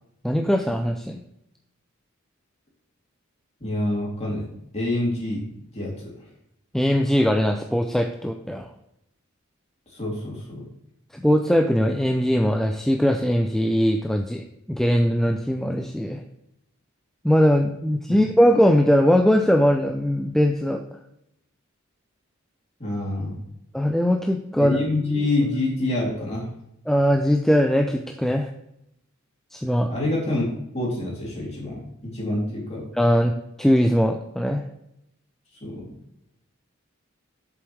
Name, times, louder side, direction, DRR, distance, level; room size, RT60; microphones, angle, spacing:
voice 1, 0.2-1.2 6.7-8.7 11.1-16.2 17.2-20.8 23.7-24.8 26.9-28.5 29.5-29.9 32.9-33.3 33.6-34.6, equal, ahead, 4 dB, 0.4 m, -20 dB
voice 2, 3.6-4.5 4.7-5.4 5.7-6.1 9.9-10.6 18.1-18.2 22.8-23.4 24.6-26.5 29.9-30.5 30.7-32.8 35.6-35.9, left 2 dB, 30° left, -4 dB, 3.3 m, -26 dB
7.9 x 7.1 x 3.4 m, 0.79 s
head